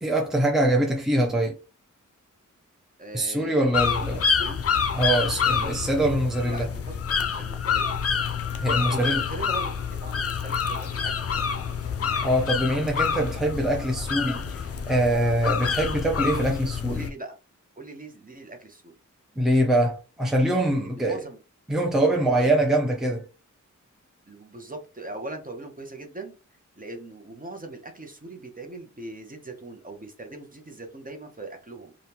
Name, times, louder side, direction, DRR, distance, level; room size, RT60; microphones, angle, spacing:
voice 1, 0.0-1.5 3.1-4.2 4.9-6.7 8.6-9.2 12.2-17.0 19.4-21.2 21.7-23.3, right 1 dB, ahead, 0.7 m, -23 dB
voice 2, 3.0-4.6 5.5-5.9 6.4-6.8 7.2-8.0 8.9-9.7 10.0-11.1 16.9-17.4 17.8-18.9 20.8-21.4 22.2-22.5 24.3-26.4 26.8-32.0, right 2 dB, 25° right, 0.8 m, -40 dB
sound 1, 3.7-17.1, left 6 dB, 50° left, 0.5 m, -27 dB
3.5 x 2.4 x 2.8 m
wide cardioid pair, 70°, 31 cm